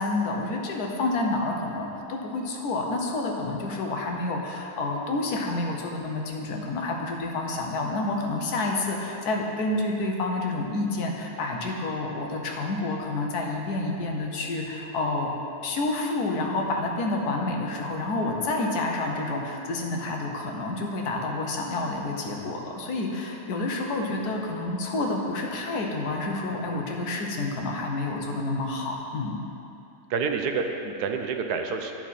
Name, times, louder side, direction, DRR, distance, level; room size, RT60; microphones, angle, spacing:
voice 1, 0.0-15.3 15.6-29.4, left 2 dB, 75° left, 1 dB, 1.4 m, -29 dB
voice 2, 30.1-31.9, right 5 dB, 80° right, 5 dB, 1.2 m, -28 dB
9.4 x 6.0 x 4.1 m, 2.9 s
omnidirectional pair, 1.7 m